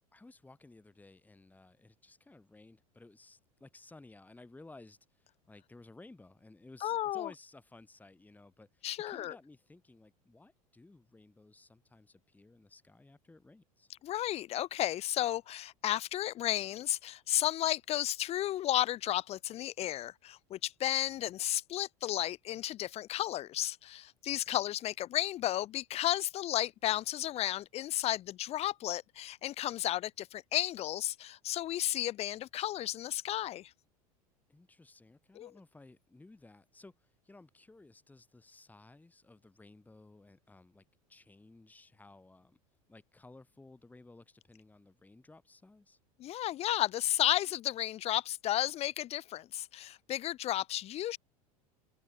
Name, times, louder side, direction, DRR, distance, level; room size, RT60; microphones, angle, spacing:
voice 1, 0.1-13.9 21.1-21.3 24.4-24.5 34.5-42.6 42.9-46.0, left 2 dB, 10° left, 2.8 m, -57 dB
voice 2, 6.8-7.3 8.8-9.3 14.0-33.7 35.4-35.5 46.2-51.2, left 13 dB, 35° left, 0.7 m, -33 dB
figure-of-eight pair, 80°, 19 cm